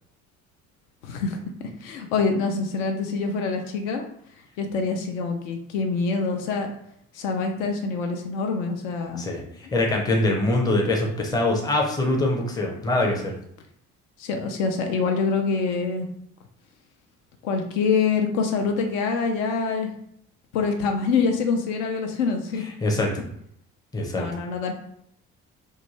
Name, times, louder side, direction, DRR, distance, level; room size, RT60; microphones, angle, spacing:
voice 1, 1.0-1.4 1.8-4.1 4.6-6.7 7.1-9.3 14.2-16.1 17.4-19.9 20.5-22.6 24.2-24.7, left 4 dB, 65° left, 3 dB, 0.5 m, -25 dB
voice 2, 9.7-13.3 22.8-23.2 23.9-24.3, left 2 dB, 10° left, 0 dB, 0.5 m, -23 dB
2.3 x 2.2 x 3.0 m, 0.70 s
figure-of-eight pair, 50°, 43 cm